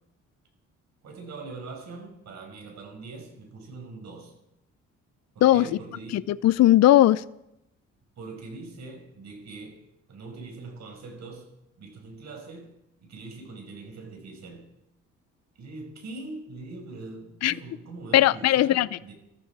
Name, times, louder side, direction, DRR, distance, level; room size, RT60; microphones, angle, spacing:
voice 1, 1.0-4.3 5.4-6.3 8.2-9.8 10.1-12.7 13.0-14.7 15.6-19.1, right 3 dB, 60° right, 5.3 m, -42 dB
voice 2, 6.1-7.2 17.4-17.5 18.1-18.9, left 14 dB, 60° left, 0.5 m, -18 dB
22.0 x 13.5 x 4.7 m
cardioid pair, 90°, 30 cm